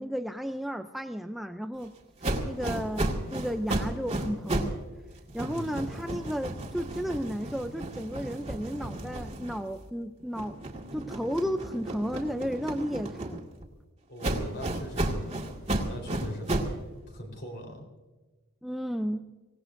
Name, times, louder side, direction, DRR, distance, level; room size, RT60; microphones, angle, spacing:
voice 1, 0.0-1.9 2.4-4.8 5.3-10.6 10.9-13.4 18.6-19.3, equal, ahead, 6 dB, 0.4 m, -33 dB
sound 1, 2.2-4.8 5.1-9.9 10.3-13.7 14.2-16.8, right 1 dB, 30° right, 2.0 m, -33 dB
voice 2, 5.4-5.8 14.1-15.4 15.9-17.9, equal, 50° left, 2 dB, 4.0 m, -41 dB
25.0 x 18.0 x 2.6 m, 1.2 s
head